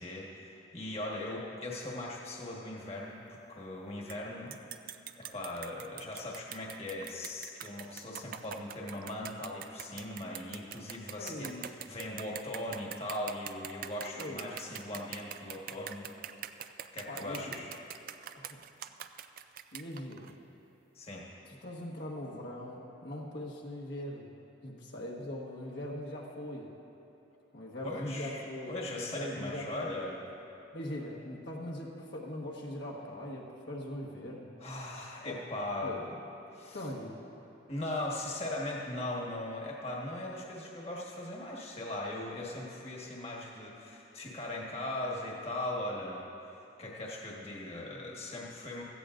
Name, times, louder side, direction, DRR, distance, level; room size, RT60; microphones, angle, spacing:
voice 1, 0.0-4.6 5.2-16.1 16.9-17.7 20.9-21.2 27.8-28.4 28.7-30.3 34.6-36.2 36.5-36.8 37.7-46.2 46.8-48.8, left 1 dB, 30° left, -3 dB, 1.4 m, -39 dB
sound 1, 4.1-4.2 4.5-20.3, right 10 dB, 50° right, 0.4 m, -44 dB
voice 2, 11.2-12.0 14.1-14.5 17.1-17.7 18.4-18.5 19.7-20.4 21.4-24.4 24.6-26.7 27.5-30.0 30.7-34.5 35.2-35.5 35.8-36.0 36.7-37.2, left 1 dB, 65° left, -3 dB, 1.4 m, -41 dB
16.5 x 14.0 x 2.5 m, 3.0 s
head